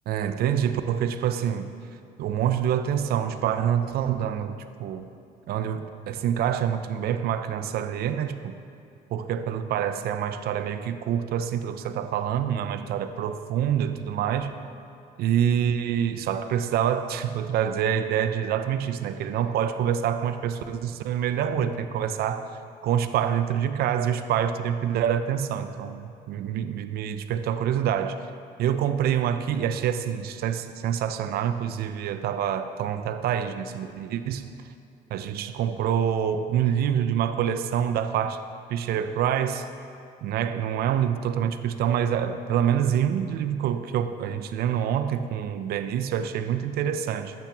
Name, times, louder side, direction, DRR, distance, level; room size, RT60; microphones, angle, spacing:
voice 1, 0.1-1.7 2.2-5.1 5.5-8.6 9.1-14.5 15.2-22.5 22.8-28.2 28.6-34.5 35.1-38.4 38.7-39.7 40.2-47.3, right 9 dB, 70° right, 10 dB, 0.5 m, -26 dB
12.0 x 8.6 x 2.9 m, 2.5 s
cardioid pair, 110°, 17 cm